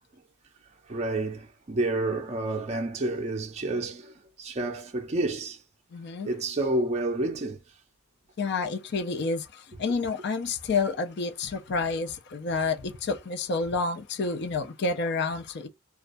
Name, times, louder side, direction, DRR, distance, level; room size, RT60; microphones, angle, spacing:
voice 1, 0.8-5.6 6.2-7.8, right 2 dB, 30° right, 0.4 m, -29 dB
voice 2, 5.9-6.3 8.4-15.7, left 4 dB, 55° left, 0.4 m, -29 dB
2.3 x 2.2 x 2.4 m
head